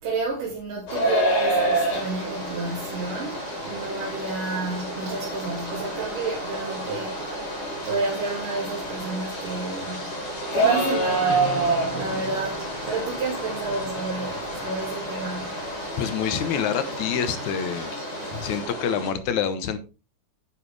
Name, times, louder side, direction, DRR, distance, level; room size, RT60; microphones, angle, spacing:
voice 1, 0.0-7.2 7.8-10.1 10.5-11.7 11.9-15.6 18.3-18.5, right 3 dB, 90° right, 4.1 m, -31 dB
sound 1, 0.9-19.1, right 1 dB, 45° left, 5.2 m, -29 dB
sound 2, 1.9-18.6, right 2 dB, 35° right, 4.2 m, -41 dB
voice 2, 16.0-17.9 18.4-19.8, left 8 dB, 70° left, 2.4 m, -26 dB
10.0 x 9.8 x 3.4 m
omnidirectional pair, 3.7 m